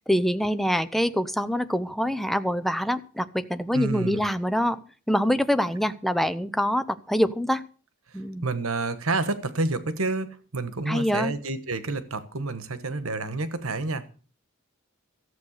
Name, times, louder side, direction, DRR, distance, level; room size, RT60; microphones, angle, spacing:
voice 1, 0.1-4.8 5.1-7.6 8.1-8.5 10.9-11.3, equal, ahead, 0.7 m, -25 dB
voice 2, 3.7-4.2 8.4-14.1, right 3 dB, 85° right, 1.4 m, -29 dB
14.0 x 8.1 x 6.6 m
head